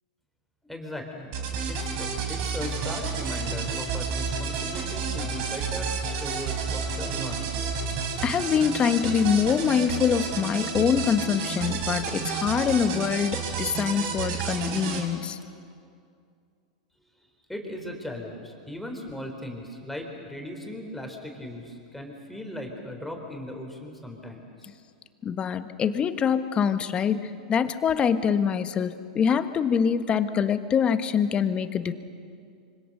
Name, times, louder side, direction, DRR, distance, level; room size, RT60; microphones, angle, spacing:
voice 1, 0.6-1.4 1.7-7.6 17.1-24.7, left 1 dB, 5° left, 1 dB, 4.0 m, -38 dB
sound 1, 1.3-15.0, right 5 dB, 55° right, 4.1 m, -31 dB
voice 2, 8.2-15.4 25.2-31.9, left 7 dB, 25° left, 10 dB, 1.3 m, -24 dB
25.5 x 25.0 x 6.7 m, 2.3 s
hypercardioid pair, 110°, 4 cm